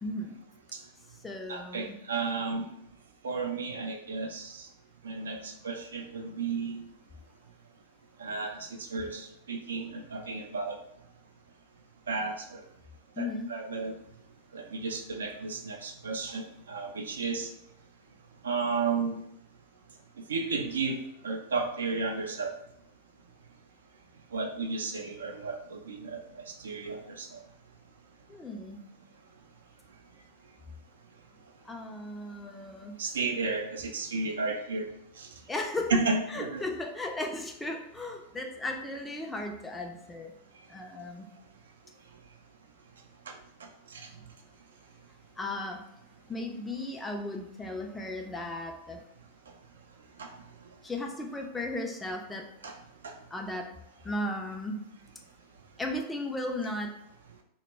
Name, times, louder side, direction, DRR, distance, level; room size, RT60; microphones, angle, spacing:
voice 1, 0.0-0.4 1.2-2.0 13.2-13.5 28.3-28.8 31.7-33.0 35.5-35.9 36.3-40.3 40.7-41.3 45.4-45.8 46.3-49.0 50.8-52.5 53.3-53.7 54.0-54.8 55.8-56.9, left 1 dB, 10° left, 2 dB, 0.4 m, -36 dB
voice 2, 1.5-2.7 3.2-4.7 5.0-6.8 8.2-10.8 12.1-12.6 13.2-13.9 14.5-16.4 16.7-17.5 18.4-19.2 20.3-21.0 21.2-22.5 24.3-26.2 26.5-27.4 33.0-34.9 35.2-35.3 35.9-36.6 43.3-43.4 43.9-44.1 50.2-50.3 52.6-52.8 53.0-53.1, right 4 dB, 65° right, 2 dB, 0.3 m, -33 dB
2.1 x 2.1 x 3.3 m, 0.77 s
figure-of-eight pair, 90°, 0 cm